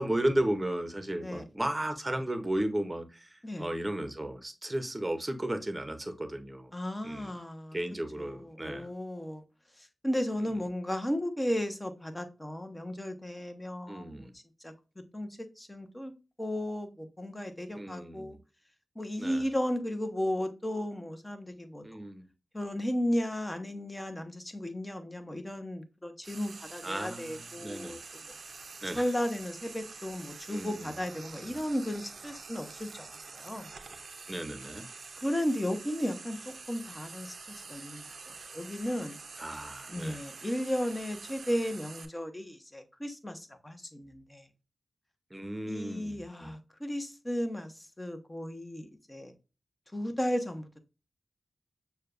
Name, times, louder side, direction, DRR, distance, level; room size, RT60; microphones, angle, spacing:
voice 1, 0.0-6.7 7.0-7.3 7.7-8.9 13.9-14.3 17.8-18.4 19.2-19.4 21.8-22.3 26.8-28.0 28.8-29.0 30.5-30.9 31.4-31.6 34.3-34.9 39.4-40.2 45.3-46.5, right 1 dB, 20° right, 0.8 m, -34 dB
voice 2, 6.7-7.8 8.2-9.4 9.8-14.3 14.6-14.7 15.1-16.1 16.4-18.4 19.0-21.8 22.5-28.0 28.9-33.7 35.2-39.2 39.9-44.5 45.7-49.3 49.9-50.7, equal, 20° left, 0.9 m, -34 dB
Frying (food), 26.2-42.1, right 4 dB, 70° right, 0.5 m, -47 dB
6.4 x 2.3 x 2.5 m
cardioid pair, 45°, 0 cm